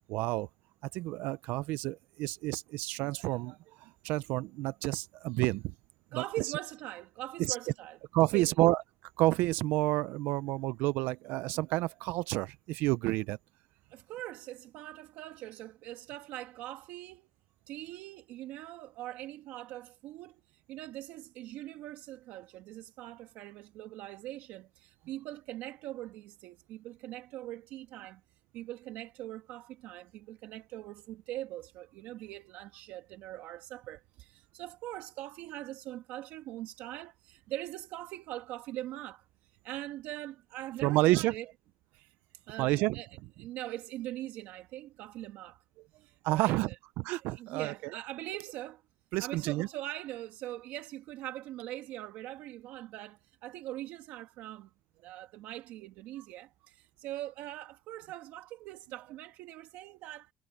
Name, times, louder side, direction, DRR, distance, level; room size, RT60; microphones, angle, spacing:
voice 1, 0.1-0.5 0.9-5.7 6.1-6.5 7.4-7.6 8.1-8.8 9.2-13.4 40.8-41.3 42.6-43.0 46.2-46.7 47.0-48.0 49.1-49.7, right 18 dB, 85° right, 0.4 m, -29 dB
voice 2, 6.1-8.0 8.3-8.5 13.9-17.3 17.7-20.4 20.7-28.2 28.5-39.3 39.6-41.5 42.5-43.1 43.4-45.6 46.0-46.6 47.3-48.8 49.2-54.7 55.0-60.3, right 14 dB, 70° right, 1.7 m, -42 dB
cardioid pair, 170°, 3 cm